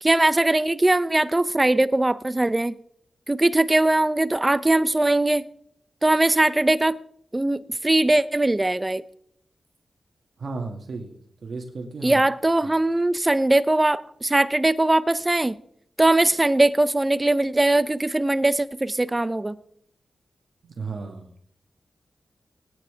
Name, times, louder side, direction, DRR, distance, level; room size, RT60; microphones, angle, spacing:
voice 1, 0.0-2.7 3.3-5.4 6.0-7.0 7.3-9.0 12.0-15.6 16.0-19.6, right 2 dB, 20° right, 15 dB, 0.7 m, -20 dB
voice 2, 10.4-11.2 11.4-12.3 12.6-12.8 20.6-21.3, right 3 dB, 70° right, 3 dB, 2.1 m, -34 dB
20.0 x 9.4 x 3.5 m, 0.68 s
cardioid pair, 60°, 0 cm